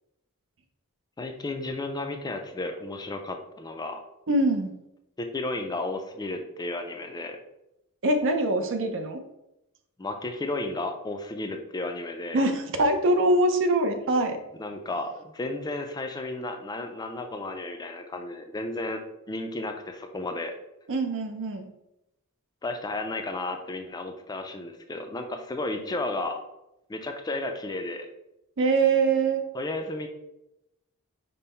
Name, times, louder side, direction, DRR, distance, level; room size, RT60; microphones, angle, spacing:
voice 1, 1.2-4.0 5.2-7.4 10.0-12.4 14.6-19.0 19.3-20.5 22.6-26.4 26.9-28.1 29.5-30.1, left 2 dB, 20° left, 5 dB, 0.4 m, -33 dB
voice 2, 4.3-4.7 8.0-9.2 12.3-14.4 20.9-21.7 28.6-29.4, right 2 dB, 60° right, 7 dB, 0.5 m, -23 dB
5.3 x 2.1 x 4.3 m, 0.88 s
head